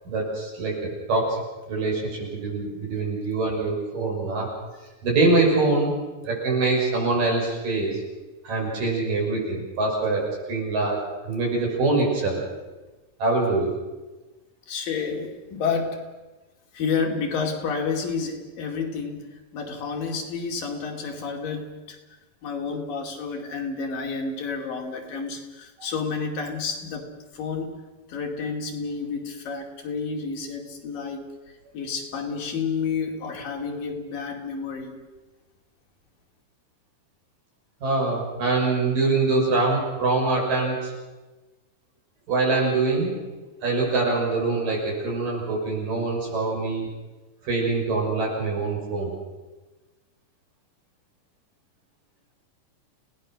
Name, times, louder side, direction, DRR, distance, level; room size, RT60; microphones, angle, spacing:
voice 1, 0.1-1.4 1.7-4.5 5.0-5.9 6.2-8.0 8.4-11.0 11.2-12.4 13.2-13.7 25.8-25.9 37.8-40.9 42.3-43.2 43.6-46.9 47.4-49.1, right 3 dB, 70° right, -2 dB, 8.0 m, -24 dB
voice 2, 14.7-16.1 16.7-22.0 22.4-27.1 27.3-27.7 28.1-35.0, left 5 dB, 75° left, 2 dB, 4.3 m, -30 dB
30.0 x 18.5 x 6.4 m, 1.2 s
omnidirectional pair, 4.0 m